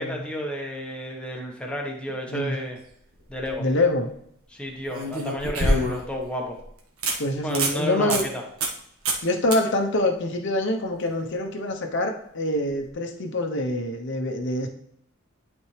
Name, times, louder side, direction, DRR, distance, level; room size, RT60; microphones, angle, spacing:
voice 1, 0.0-2.8 3.3-3.7 4.5-6.6 7.4-8.4, equal, 5° left, 0 dB, 1.3 m, -31 dB
sound 1, 3.1-3.5 4.9-6.2 6.6-6.7 7.0-7.2 7.5-7.8 8.1-8.2 8.6-8.8 9.0-9.2 9.5-9.6 12.7-12.8, right 1 dB, 85° right, 1.4 m, -25 dB
voice 2, 3.6-4.1 7.2-8.3 9.2-14.7, left 1 dB, 60° left, 3 dB, 0.9 m, -25 dB
11.5 x 4.3 x 3.3 m, 0.72 s
head